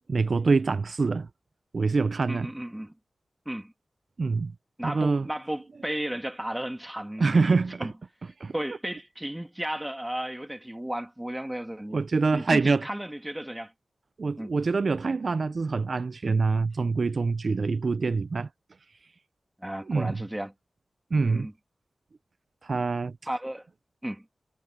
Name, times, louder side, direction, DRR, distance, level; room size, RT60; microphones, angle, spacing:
voice 1, 0.1-1.3 1.7-2.5 4.2-4.5 4.8-5.3 7.2-7.9 8.4-8.5 11.9-12.9 14.2-18.5 19.9-20.2 21.1-21.5 22.6-23.2, right 4 dB, 65° right, 0.5 m, -25 dB
voice 2, 2.3-2.9 3.4-3.7 4.8-7.9 8.5-12.0 12.3-13.7 14.4-14.5 19.6-20.5 21.2-21.5 23.3-23.7 24.0-24.2, right 1 dB, 10° right, 2.8 m, -34 dB
cardioid pair, 40°, 0 cm